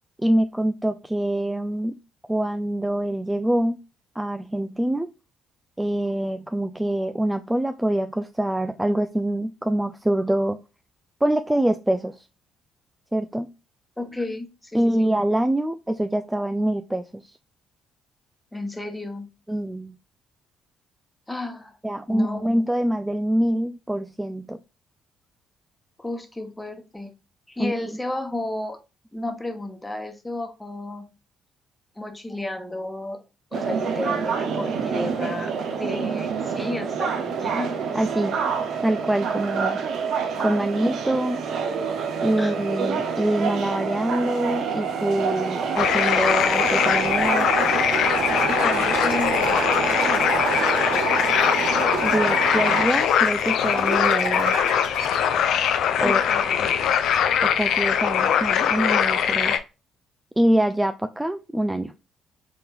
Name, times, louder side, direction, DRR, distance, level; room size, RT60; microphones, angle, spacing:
voice 1, 0.2-2.0 2.3-3.8 4.2-5.1 5.8-10.6 11.2-12.3 13.1-13.5 14.7-17.2 19.5-20.0 21.8-24.6 27.6-27.7 37.9-38.4 38.8-39.8 40.4-41.4 42.2-47.5 52.0-54.6 56.0-56.2 57.4-59.6 60.4-61.9, right 1 dB, 10° right, 9 dB, 0.3 m, -25 dB
voice 2, 14.0-15.1 18.5-19.3 21.3-21.8 22.1-22.5 26.0-27.1 27.5-28.8 29.1-31.1 32.0-33.2 33.5-35.5 35.8-37.8 42.4-42.6 48.5-50.2 56.0-56.9, left 2 dB, 15° left, 5 dB, 1.0 m, -32 dB
sound 1, 33.5-52.9, right 6 dB, 60° right, 0.6 m, -27 dB
sound 2, 45.8-59.6, left 8 dB, 65° left, 0.4 m, -22 dB
sound 3, 46.1-55.1, right 2 dB, 90° right, 1.3 m, -34 dB
4.0 x 3.7 x 2.5 m, 0.29 s
hypercardioid pair, 50°, 0 cm